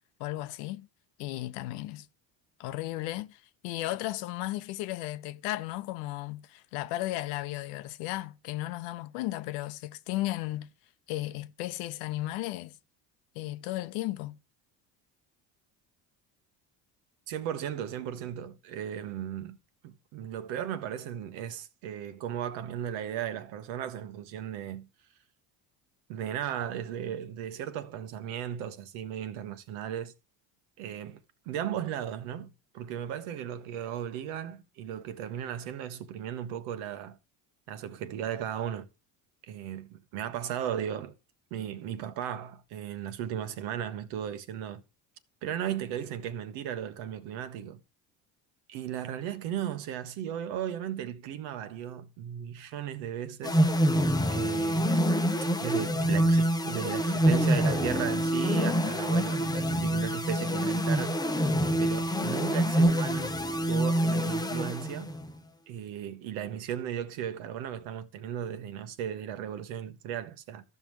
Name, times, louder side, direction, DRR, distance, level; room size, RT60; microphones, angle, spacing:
voice 1, 0.2-0.9 1.2-2.1 2.6-10.7 11.1-12.7 13.3-14.4, left 16 dB, 80° left, 0.8 m, -35 dB
voice 2, 17.3-19.6 19.8-24.9 26.1-30.1 30.8-31.2 31.5-37.2 37.7-38.9 39.5-41.1 41.5-44.8 45.4-47.8 48.7-53.9 54.3-55.0 55.6-61.2 61.8-63.4 63.7-65.1 65.7-70.6, right 9 dB, 75° right, 1.2 m, -36 dB
sound 1, 53.4-65.3, equal, 10° left, 0.8 m, -26 dB
14.0 x 5.6 x 3.1 m
supercardioid pair, 75°, 48 cm